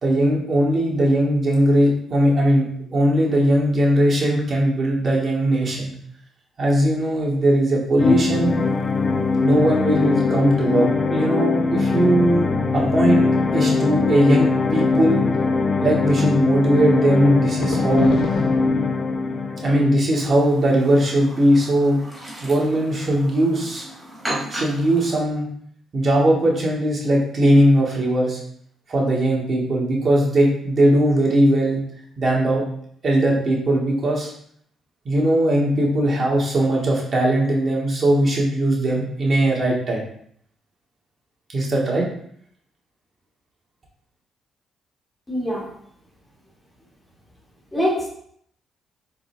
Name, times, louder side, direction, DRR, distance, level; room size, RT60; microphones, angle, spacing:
voice 1, 0.0-5.9 6.6-8.5 9.4-13.3 13.5-15.2 15.8-18.2 19.6-22.0 22.4-23.9 24.3-25.5 25.9-28.4 28.9-31.8 32.2-32.6 33.0-34.3 35.0-40.0 41.5-42.0, right 1 dB, 45° right, -3 dB, 2.5 m, -19 dB
sound 1, 8.0-19.9, left 4 dB, 35° left, 0.8 m, -21 dB
sound 2, 17.6-19.8 20.3-20.4, left 1 dB, 70° left, 1.9 m, -31 dB
Chirp tweet, 20.1-25.2, right 1 dB, 10° right, 3.2 m, -35 dB
voice 2, 45.3-45.7 47.7-48.1, equal, 15° left, -3 dB, 2.4 m, -23 dB
7.8 x 4.9 x 3.6 m, 0.65 s
cardioid pair, 90°, 0 cm